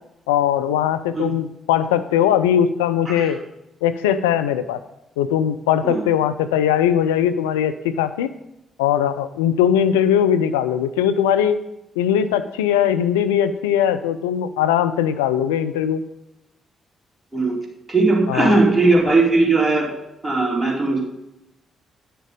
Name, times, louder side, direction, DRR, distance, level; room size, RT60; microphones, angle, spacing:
voice 1, 0.3-3.4 3.8-4.8 5.2-8.3 8.8-11.6 12.0-16.0 18.3-18.6, left 9 dB, 85° left, 12 dB, 0.4 m, -20 dB
voice 2, 17.9-19.9 20.2-21.1, right 3 dB, 10° right, -2 dB, 4.1 m, -18 dB
10.0 x 6.7 x 5.1 m, 0.89 s
hypercardioid pair, 40°, 0 cm